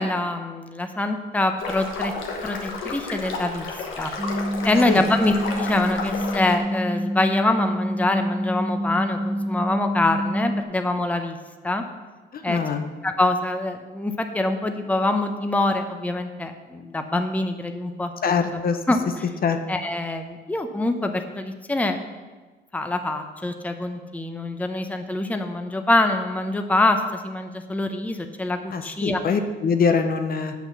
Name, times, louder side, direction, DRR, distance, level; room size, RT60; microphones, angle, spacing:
voice 1, 0.0-2.1 2.4-3.7 4.0-4.1 4.6-11.4 11.6-11.8 12.4-12.6 13.0-18.6 18.9-19.2 19.7-22.0 22.7-29.2, left 2 dB, 5° left, 6 dB, 0.7 m, -25 dB
sound 1, 1.6-6.6, left 3 dB, 80° left, 1.3 m, -32 dB
sound 2, 4.2-10.6, equal, 10° right, 1.1 m, -27 dB
voice 2, 12.3-12.9 18.2-18.8 19.4-19.6 28.7-30.5, left 5 dB, 50° left, 7 dB, 0.7 m, -23 dB
6.3 x 5.8 x 7.0 m, 1.3 s
cardioid pair, 90°, 20 cm